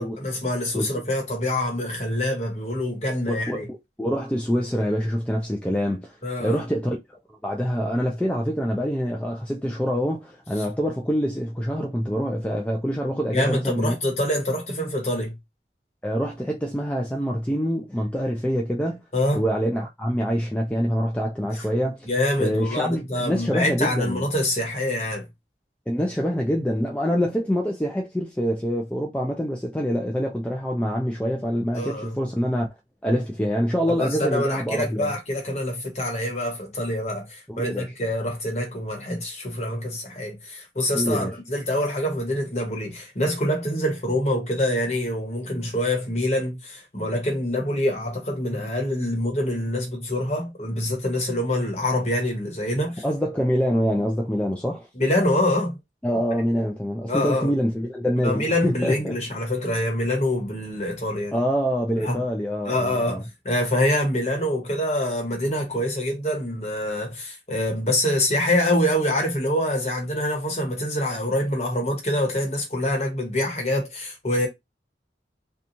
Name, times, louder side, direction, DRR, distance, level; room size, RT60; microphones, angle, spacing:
voice 1, 0.0-3.7 6.2-6.6 13.3-15.3 19.1-19.4 22.1-25.2 31.7-32.2 33.9-53.0 55.0-55.8 57.1-57.5 58.2-61.4 62.0-62.2 62.6-74.5, left 1 dB, 40° left, 1.1 m, -25 dB
voice 2, 3.3-3.6 4.0-14.0 16.0-19.0 19.3-22.1 22.4-24.2 25.9-32.7 33.0-35.1 37.5-37.9 40.9-41.3 53.0-54.9 56.0-59.2 61.3-63.2, equal, 5° left, 0.3 m, -25 dB
2.8 x 2.3 x 2.6 m
head